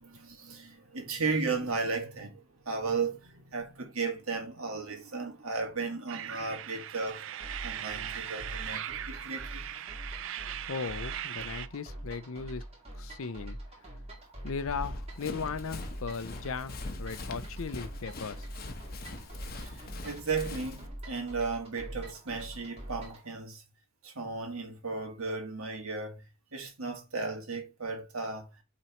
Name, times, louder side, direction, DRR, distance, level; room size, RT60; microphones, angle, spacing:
voice 1, 0.0-7.2 7.6-9.6 19.5-23.6 24.0-26.2 26.5-28.5, right 4 dB, 75° right, 2.1 m, -35 dB
sound 1, 6.1-11.7, right 11 dB, 60° right, 0.4 m, -39 dB
sound 2, 7.4-23.3, right 1 dB, 25° right, 2.2 m, -44 dB
voice 2, 10.7-12.6 12.9-13.6 14.4-18.5, left 5 dB, 70° left, 0.6 m, -37 dB
Run, 14.7-20.9, left 2 dB, 45° left, 0.9 m, -42 dB
8.9 x 4.0 x 3.0 m
head